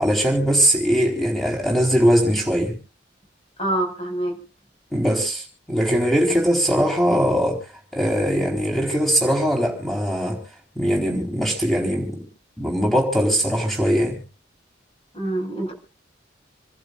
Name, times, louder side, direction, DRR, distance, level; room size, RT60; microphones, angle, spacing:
voice 1, 0.0-2.8 4.9-7.6 7.9-10.4 10.8-12.2 12.6-14.2, equal, ahead, 4.2 m, -21 dB
voice 2, 3.6-4.4 15.1-15.7, right 1 dB, 30° left, 5.7 m, -25 dB
28.0 x 12.0 x 2.5 m
head